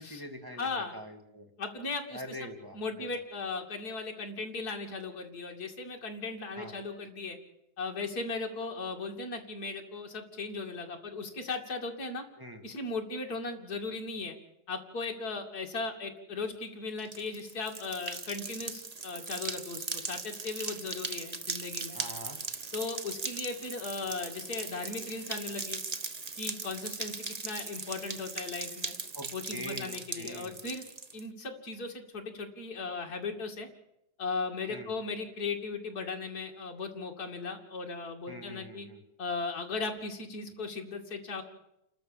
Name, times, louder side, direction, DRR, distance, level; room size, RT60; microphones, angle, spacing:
voice 1, 0.0-1.5 2.1-3.1 6.5-6.7 12.4-12.6 21.9-22.4 29.1-30.5 34.7-34.9 38.3-39.0, equal, 10° right, 3 dB, 2.2 m, -44 dB
voice 2, 0.6-0.9 1.6-7.4 7.8-12.2 12.6-14.4 14.7-22.0 22.7-25.8 26.4-28.9 29.3-30.8 31.1-33.7 34.2-38.9 39.2-41.4, left 4 dB, 50° left, 2 dB, 2.8 m, -37 dB
sound 1, 17.0-31.2, right 4 dB, 60° right, 0.4 m, -39 dB
29.0 x 13.0 x 7.2 m, 0.86 s
omnidirectional pair, 2.2 m